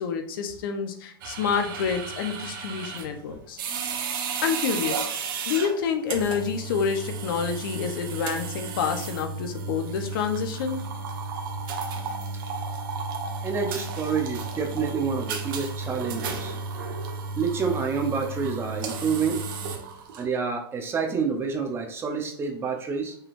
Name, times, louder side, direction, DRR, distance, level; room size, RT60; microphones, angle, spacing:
voice 1, 0.0-3.6 4.4-5.1 5.5-10.8, left 6 dB, 65° left, 6 dB, 0.9 m, -28 dB
sound 1, 1.2-20.2, right 4 dB, 60° right, 1.2 m, -33 dB
voice 2, 13.4-16.6 17.4-19.4 20.2-23.2, right 5 dB, 20° right, 4 dB, 0.7 m, -28 dB
5.7 x 3.6 x 2.6 m, 0.64 s
hypercardioid pair, 140°, 13 cm